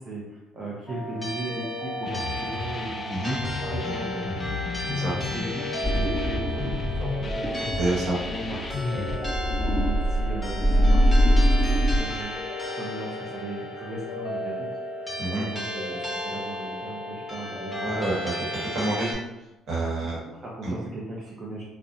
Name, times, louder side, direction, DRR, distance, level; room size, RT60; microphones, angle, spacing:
voice 1, 0.0-4.5 4.9-5.7 6.0-9.4 9.7-11.4 11.7-12.3 12.8-17.9 19.8-19.9 20.3-21.6, right 2 dB, 45° right, -4 dB, 0.5 m, -37 dB
sound 1, 0.9-19.1, left 1 dB, 15° left, 0.9 m, -34 dB
sound 2, 2.0-9.2, left 3 dB, 40° left, 0.3 m, -33 dB
sound 3, 5.8-12.0, equal, 15° right, 0.8 m, -23 dB
voice 2, 7.8-8.2 15.2-15.4 17.8-18.3 18.7-19.2 19.7-20.2 20.6-20.7, right 2 dB, 60° right, -5 dB, 1.1 m, -27 dB
2.6 x 2.1 x 2.5 m, 0.97 s
supercardioid pair, 65°, 0 cm